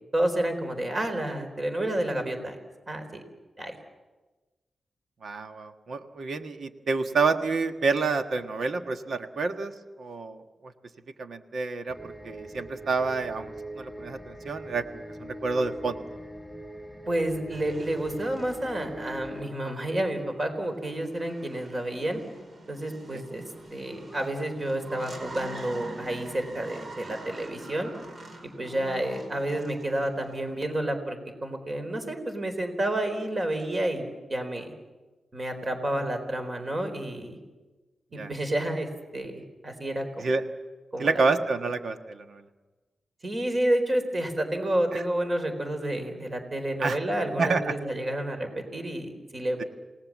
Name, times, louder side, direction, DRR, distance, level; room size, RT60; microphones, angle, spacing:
voice 1, 0.1-2.6 2.9-3.2 3.6-3.8 17.1-22.2 22.7-23.4 23.7-27.9 28.4-31.2 31.4-34.0 34.3-34.7 35.3-37.4 38.1-40.3 40.9-41.3 43.2-49.7, right 1 dB, 30° right, 6 dB, 4.2 m, -30 dB
voice 2, 5.2-9.7 10.0-10.7 11.2-13.5 13.8-16.0 38.2-38.3 40.2-40.4 41.0-42.4 44.9-45.0 46.8-47.0 47.4-47.7, right 4 dB, 65° right, 7 dB, 1.5 m, -28 dB
sound 1, 11.9-19.5, right 1 dB, ahead, 5.9 m, -42 dB
sound 2, 17.5-30.7, right 2 dB, 45° right, 4.5 m, -46 dB
28.0 x 18.5 x 7.5 m, 1.2 s
wide cardioid pair, 115°, 0 cm